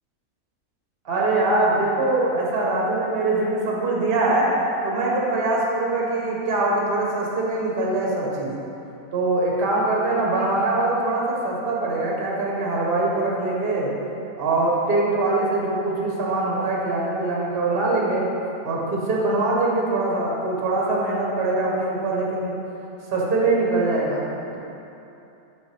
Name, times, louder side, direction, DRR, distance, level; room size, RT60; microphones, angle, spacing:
voice 1, 1.0-4.5 4.8-8.5 9.1-13.9 14.4-18.3 18.6-22.6 23.1-24.3, right 2 dB, 45° right, -3 dB, 1.1 m, -23 dB
6.2 x 6.1 x 3.3 m, 2.8 s
omnidirectional pair, 1.6 m